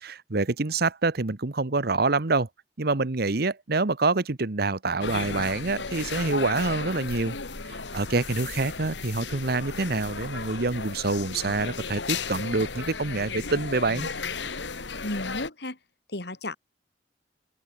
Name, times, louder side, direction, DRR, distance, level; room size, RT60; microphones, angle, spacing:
voice 1, 0.0-2.5 2.8-7.4 7.7-14.1, right 3 dB, 60° right, 1.1 m, -26 dB
sound 1, 5.0-15.5, left 4 dB, 90° left, 2.2 m, -35 dB
voice 2, 15.0-15.8 16.1-16.6, left 1 dB, 65° left, 3.4 m, -33 dB
open air
head